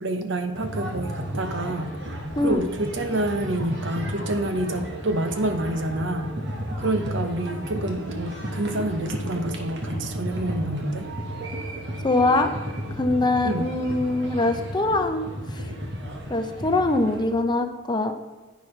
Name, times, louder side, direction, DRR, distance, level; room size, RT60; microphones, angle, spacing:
voice 1, 0.0-2.0 2.4-6.3 6.8-11.1 13.4-13.7, right 1 dB, 80° right, 7 dB, 1.0 m, -28 dB
sound 1, 0.5-17.2, equal, 65° right, 1.6 m, -33 dB
voice 2, 12.0-12.5 13.0-15.3 15.5-15.6 16.3-18.1, left 2 dB, 25° left, 7 dB, 0.7 m, -23 dB
10.5 x 9.3 x 3.3 m, 1.2 s
head